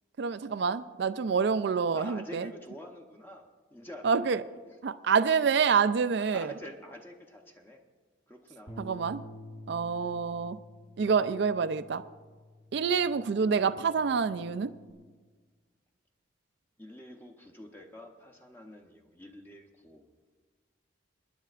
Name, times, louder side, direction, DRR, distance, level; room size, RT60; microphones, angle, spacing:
voice 1, 0.2-2.5 4.0-4.4 4.8-6.5 8.8-9.2 9.7-10.6 11.0-12.0 12.7-14.7, right 5 dB, 60° right, 13 dB, 0.4 m, -27 dB
voice 2, 1.9-4.3 6.2-7.8 8.3-8.7 16.8-20.0, equal, 10° left, 2 dB, 0.8 m, -47 dB
Bass guitar, 8.7-14.9, left 1 dB, 30° left, 1.1 m, -50 dB
28.0 x 10.0 x 2.5 m, 1.5 s
head